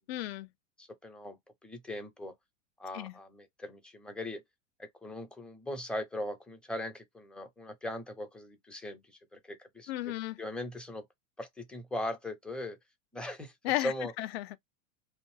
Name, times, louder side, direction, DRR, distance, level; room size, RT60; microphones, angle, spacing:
voice 1, 0.1-0.5 2.9-3.1 9.9-10.4 13.6-14.6, left 15 dB, 50° left, 0.5 m, -34 dB
voice 2, 0.8-2.3 2.8-4.4 4.8-9.9 10.4-11.0 11.4-12.8 13.1-13.5 13.8-14.1, left 1 dB, ahead, 0.5 m, -39 dB
2.6 x 2.0 x 3.1 m
figure-of-eight pair, 95°, 40 cm